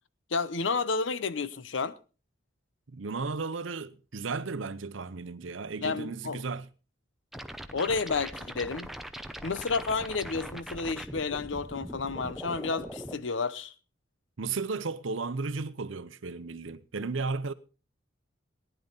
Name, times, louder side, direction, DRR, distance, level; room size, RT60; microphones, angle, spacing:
voice 1, 0.3-1.9 5.8-6.4 7.7-8.9 9.4-13.7, left 4 dB, 70° left, 0.8 m, -31 dB
voice 2, 2.9-6.7 14.4-17.5, right 4 dB, 80° right, 0.8 m, -34 dB
sound 1, 7.3-13.2, equal, ahead, 0.7 m, -41 dB
18.5 x 10.5 x 4.0 m
head